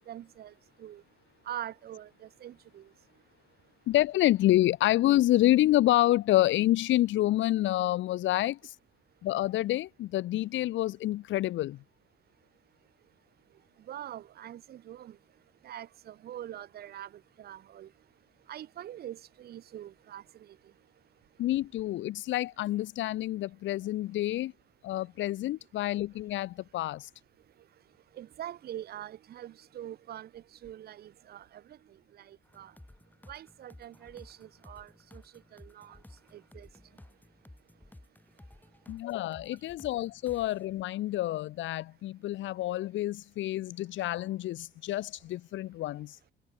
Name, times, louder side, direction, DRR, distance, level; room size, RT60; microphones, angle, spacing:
voice 1, 0.1-1.0 1.4-3.2 13.5-17.9 18.4-20.8 27.4-32.8 33.3-37.0, right 11 dB, 50° right, 0.4 m, -45 dB
voice 2, 3.9-8.7 9.2-11.8 21.4-24.5 24.8-27.1 38.9-46.2, left 15 dB, 70° left, 0.5 m, -28 dB
sound 1, 32.4-40.6, left 1 dB, 10° left, 2.8 m, -55 dB
cardioid pair, 90°, 20 cm